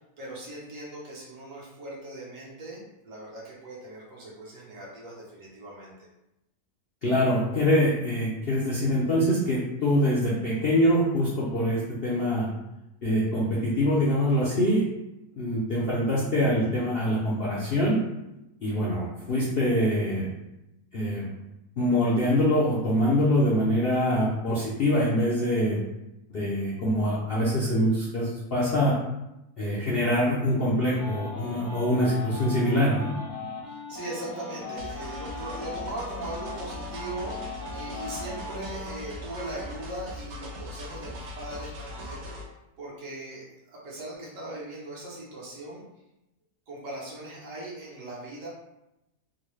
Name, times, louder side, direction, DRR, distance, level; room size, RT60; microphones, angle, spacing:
voice 1, 0.2-6.1 33.6-37.3 37.7-42.5 42.8-45.8 46.7-48.5, right 1 dB, 55° right, -6 dB, 1.3 m, -39 dB
voice 2, 7.0-12.5 13.0-14.8 15.4-18.0 18.6-20.3 20.9-21.2 21.8-25.8 26.3-29.0 29.6-33.1, equal, 55° left, -7 dB, 0.6 m, -24 dB
sound 1, 30.9-38.9, left 3 dB, 80° left, 1.4 m, -39 dB
sound 2, 34.8-42.5, left 1 dB, 80° right, 1.2 m, -40 dB
3.8 x 2.2 x 3.1 m, 0.91 s
omnidirectional pair, 1.7 m